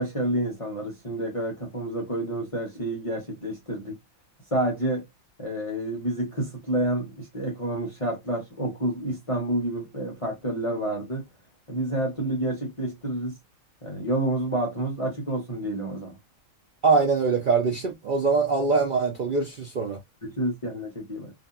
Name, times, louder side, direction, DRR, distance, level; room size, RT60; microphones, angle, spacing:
voice 1, 0.0-4.0 4.5-5.0 5.4-11.3 11.7-13.4 13.8-16.2 20.4-21.3, right 1 dB, 35° left, 0.5 m, -29 dB
voice 2, 16.8-20.0, right 4 dB, 55° right, 0.5 m, -23 dB
2.7 x 2.5 x 2.3 m
omnidirectional pair, 1.4 m